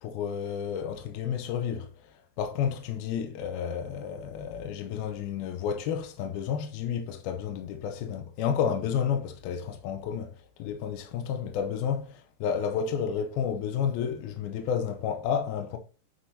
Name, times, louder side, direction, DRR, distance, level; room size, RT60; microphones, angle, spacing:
voice 1, 0.0-15.8, left 7 dB, 85° left, 2.7 m, -31 dB
10.0 x 7.4 x 2.8 m
omnidirectional pair, 4.1 m